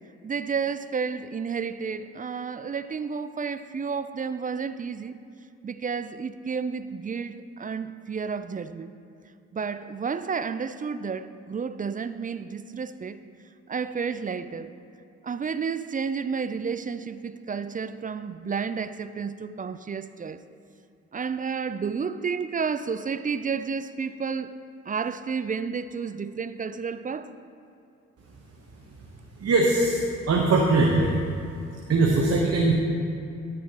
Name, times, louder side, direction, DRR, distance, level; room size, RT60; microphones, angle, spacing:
voice 1, 0.2-5.1 5.6-8.9 9.5-13.2 13.7-14.7 15.2-20.4 21.1-24.6 24.9-27.3, right 5 dB, 25° right, 0.4 m, -31 dB
voice 2, 29.4-31.1 31.9-32.7, right 2 dB, 45° right, 1.0 m, -21 dB
13.0 x 6.3 x 2.9 m
hypercardioid pair, 45°, 33 cm